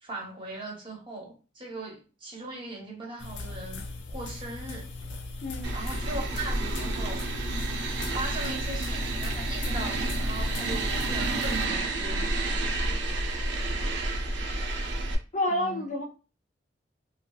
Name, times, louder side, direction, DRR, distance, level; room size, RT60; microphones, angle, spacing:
voice 1, 0.0-3.8 4.1-4.8 5.7-7.2 8.1-12.6 15.5-15.9, right 2 dB, 25° right, -2 dB, 0.9 m, -39 dB
sound 1, 3.2-11.6, left 2 dB, 85° left, 0.4 m, -39 dB
voice 2, 5.4-5.7 14.4-14.6 15.3-16.0, left 1 dB, 40° left, -1 dB, 0.6 m, -29 dB
sound 2, 5.6-15.2, right 2 dB, 65° right, 0.5 m, -30 dB
2.7 x 2.5 x 2.3 m, 0.34 s
head